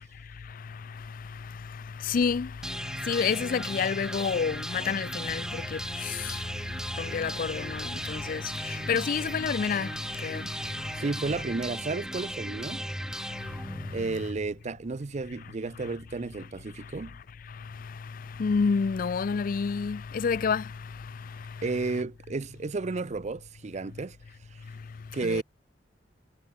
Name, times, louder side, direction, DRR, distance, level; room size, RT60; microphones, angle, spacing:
voice 1, 1.7-2.5 3.0-6.5 6.9-10.5 13.6-14.2 17.8-17.9 18.4-20.7 25.2-25.4, left 5 dB, 50° left, 0.4 m, -29 dB
sound 1, 2.6-14.6, right 1 dB, 5° right, 0.9 m, -36 dB
voice 2, 11.0-12.9 13.9-17.2 21.6-24.2 24.5-24.6 25.1-25.4, right 3 dB, 40° right, 0.5 m, -32 dB
head